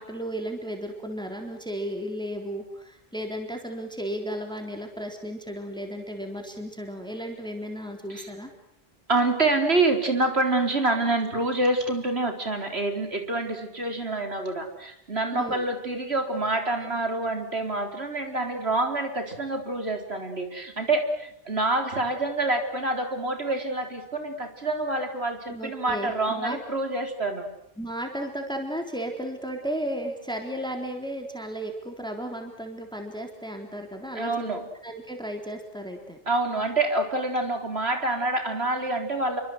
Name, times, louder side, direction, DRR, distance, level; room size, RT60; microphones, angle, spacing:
voice 1, 0.0-8.5 15.3-15.6 25.5-26.6 27.8-34.5 34.8-36.2, equal, 5° left, 3 dB, 3.8 m, -34 dB
voice 2, 9.1-27.4 34.1-34.6 36.3-39.4, right 2 dB, 85° right, 5 dB, 4.4 m, -27 dB
29.5 x 24.0 x 8.0 m, 0.72 s
omnidirectional pair, 1.0 m